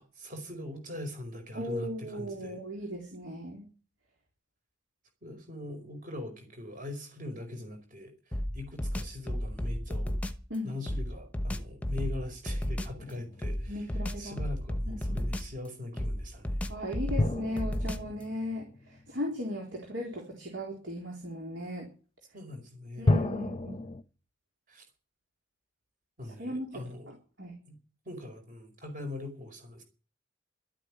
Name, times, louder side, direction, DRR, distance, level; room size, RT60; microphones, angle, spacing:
voice 1, 0.0-2.6 5.2-8.1 8.5-10.1 10.6-13.8 14.2-16.6 22.3-23.2 24.7-24.8 26.2-27.1 27.7-27.8 28.0-29.8, left 2 dB, 45° right, 5 dB, 4.9 m, -41 dB
voice 2, 1.5-3.7 10.5-10.8 13.7-14.4 14.9-15.2 16.7-21.9 23.0-23.8 26.2-27.6, left 1 dB, 70° right, 0 dB, 3.9 m, -37 dB
sound 1, 8.3-10.5 10.9-13.0 13.4-15.7 16.0-18.2, equal, 10° left, 1.0 m, -33 dB
sound 2, 13.0-14.3 17.2-19.8 23.1-24.0, left 2 dB, 30° left, 0.7 m, -32 dB
12.5 x 8.9 x 9.8 m, 0.37 s
head